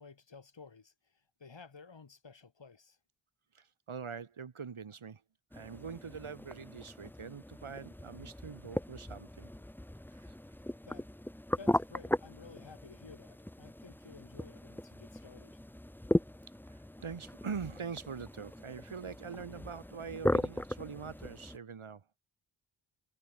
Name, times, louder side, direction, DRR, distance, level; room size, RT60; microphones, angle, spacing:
voice 1, 0.0-3.0 10.8-11.1 11.6-15.6, left 4 dB, 65° left, 7.4 m, -54 dB
voice 2, 3.5-5.2 5.5-9.5 10.1-10.3 16.7-22.0, right 6 dB, 85° right, 5.0 m, -43 dB
sound 1, 5.5-21.6, left 1 dB, 5° left, 0.7 m, -38 dB
wide cardioid pair, 75°, 48 cm